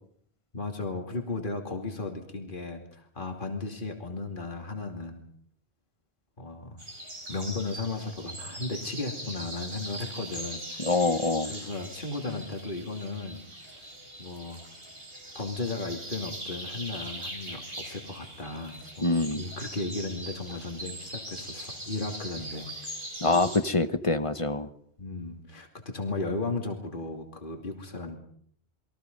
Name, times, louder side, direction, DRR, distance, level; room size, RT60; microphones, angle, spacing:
voice 1, 0.5-5.2 6.4-6.8 7.3-10.9 11.5-13.4 13.7-13.9 14.2-14.6 15.3-22.7 23.3-23.5 25.0-28.2, left 3 dB, 50° left, 3 dB, 2.9 m, -35 dB
sound 1, 6.8-23.6, right 1 dB, 60° right, 5.3 m, -41 dB
voice 2, 10.8-11.5 19.0-19.4 23.2-24.7, left 3 dB, 30° left, 11 dB, 1.3 m, -25 dB
29.0 x 22.5 x 5.4 m, 0.64 s
omnidirectional pair, 1.1 m